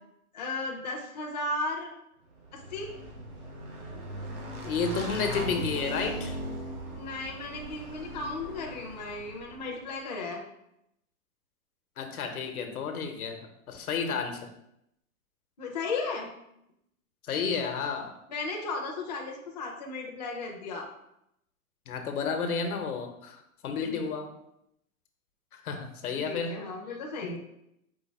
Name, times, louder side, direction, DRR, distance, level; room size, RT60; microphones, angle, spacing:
voice 1, 0.3-1.9 2.5-2.9 6.9-10.4 15.6-16.3 18.3-20.9 23.8-24.2 26.2-27.4, left 3 dB, 30° left, -1 dB, 0.4 m, -35 dB
Motorcycle / Engine, 2.4-9.7, right 1 dB, 90° right, 1.4 m, -39 dB
voice 2, 4.6-6.4 12.0-14.5 17.3-18.2 21.9-24.3 25.6-26.6 27.2-27.4, left 5 dB, 85° left, 5 dB, 1.0 m, -31 dB
4.6 x 2.6 x 4.2 m, 0.79 s
hypercardioid pair, 170°, 43 cm